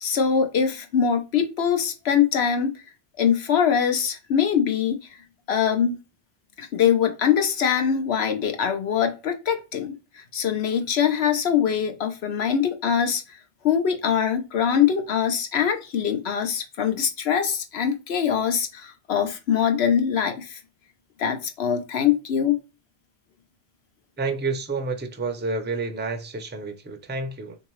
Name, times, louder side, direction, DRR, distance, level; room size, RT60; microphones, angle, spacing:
voice 1, 0.0-2.8 3.2-5.0 5.5-6.0 6.6-13.4 13.6-20.6 21.2-22.6, left 8 dB, 90° left, 1.0 m, -23 dB
voice 2, 24.2-27.6, right 3 dB, 15° right, 0.4 m, -29 dB
3.7 x 2.9 x 3.0 m
omnidirectional pair, 1.0 m